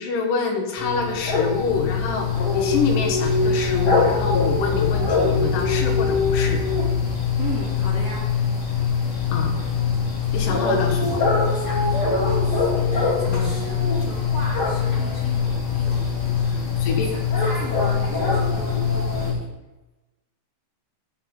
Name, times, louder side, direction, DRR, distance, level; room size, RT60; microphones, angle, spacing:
voice 1, 0.0-6.6 9.3-9.5 10.3-11.2 13.3-13.5 16.8-17.1, left 5 dB, 80° left, 2 dB, 2.9 m, -26 dB
sound 1, 0.8-19.3, left 5 dB, 45° left, 3.0 m, -22 dB
voice 2, 7.4-8.2 11.4-16.7 17.0-19.5, right 1 dB, 30° right, -10 dB, 2.9 m, -37 dB
12.5 x 7.3 x 3.7 m, 1.1 s
omnidirectional pair, 3.8 m